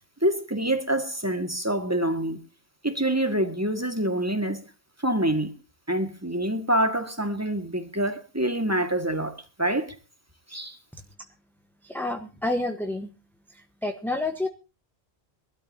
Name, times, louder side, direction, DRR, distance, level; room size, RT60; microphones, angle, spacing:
voice 1, 0.2-2.4 2.8-4.7 5.0-5.5 5.9-9.9 10.5-10.8, right 1 dB, 15° right, 1.9 m, -26 dB
voice 2, 11.8-13.1 13.5-14.5, left 2 dB, ahead, 1.0 m, -29 dB
23.0 x 13.0 x 2.8 m
omnidirectional pair, 1.1 m